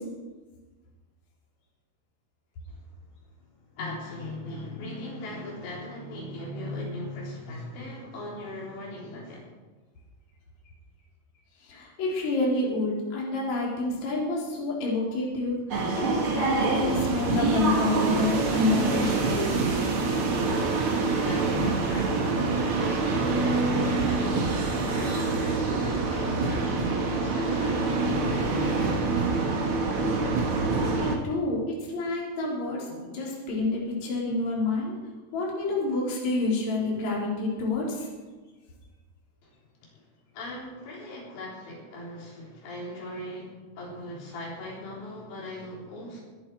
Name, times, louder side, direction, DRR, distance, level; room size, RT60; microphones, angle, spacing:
voice 1, 3.7-9.5 21.0-29.0 39.4-39.5 39.8-39.9 40.3-46.2, left 1 dB, 80° left, -3 dB, 5.9 m, -39 dB
voice 2, 11.6-15.5 15.9-19.5 30.9-34.9 35.3-38.1, left 3 dB, 40° left, -4 dB, 4.7 m, -28 dB
sound 1, 15.7-31.1, right 3 dB, 50° right, 1.6 m, -26 dB
23.5 x 11.0 x 4.7 m, 1.3 s
omnidirectional pair, 5.0 m